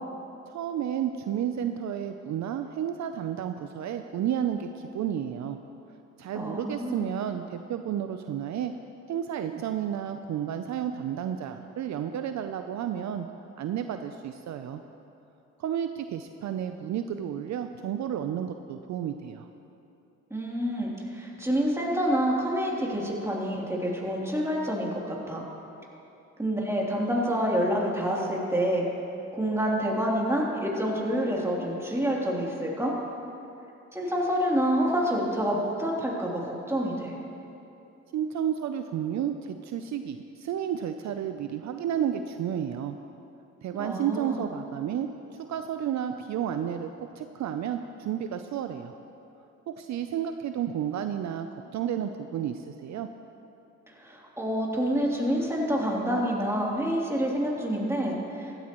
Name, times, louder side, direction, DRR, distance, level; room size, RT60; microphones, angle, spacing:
voice 1, 0.5-5.6 6.2-8.7 9.1-13.3 13.6-14.8 15.6-19.5 38.1-43.0 43.6-49.0 49.7-53.1, right 9 dB, 65° right, 8 dB, 0.6 m, -31 dB
voice 2, 6.3-7.1 20.3-25.4 26.4-28.8 29.3-32.9 33.9-37.2 43.8-44.4 54.0-58.5, equal, 10° right, -4 dB, 3.0 m, -27 dB
15.5 x 13.0 x 3.1 m, 2.9 s
supercardioid pair, 65°, 31 cm